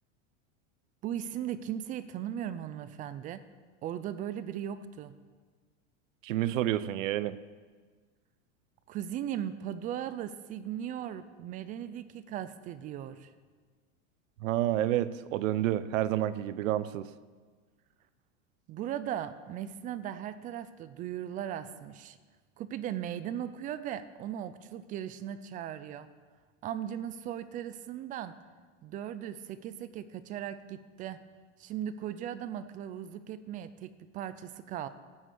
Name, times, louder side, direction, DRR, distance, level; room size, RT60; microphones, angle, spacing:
voice 1, 1.0-3.4 3.8-5.1 8.9-13.3 18.7-22.2 22.6-26.1 26.6-28.3 28.8-31.2 31.6-34.9, right 10 dB, 20° right, 13 dB, 0.4 m, -38 dB
voice 2, 6.2-7.4 14.4-17.1, right 13 dB, 85° right, 16 dB, 0.8 m, -29 dB
12.0 x 7.7 x 8.4 m, 1.5 s
supercardioid pair, 145°, 38 cm